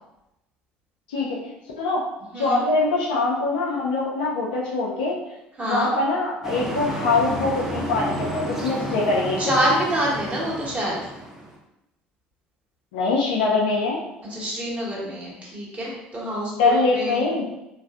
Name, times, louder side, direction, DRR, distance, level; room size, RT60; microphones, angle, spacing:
voice 1, 1.1-2.0 2.3-5.2 5.6-9.5 12.9-14.0 16.6-17.4, left 3 dB, 80° left, -3 dB, 0.5 m, -23 dB
voice 2, 2.3-2.6 5.6-5.9 9.4-11.0 14.3-17.2, right 1 dB, 30° right, -5 dB, 1.3 m, -26 dB
buses leaving station, 6.4-11.6, equal, 10° right, 0.7 m, -31 dB
3.2 x 2.5 x 2.4 m, 0.90 s
hypercardioid pair, 65°, 5 cm